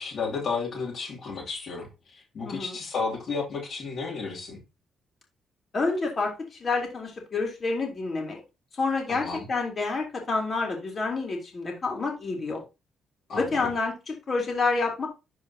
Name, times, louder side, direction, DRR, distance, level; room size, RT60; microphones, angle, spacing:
voice 1, 0.0-4.6 9.1-9.5 13.3-13.6, left 4 dB, 55° left, 3.0 m, -33 dB
voice 2, 2.4-2.8 5.7-8.4 8.8-12.6 13.4-15.1, left 3 dB, 40° left, 3.2 m, -28 dB
11.5 x 4.8 x 2.9 m
cardioid pair, 90°, 0 cm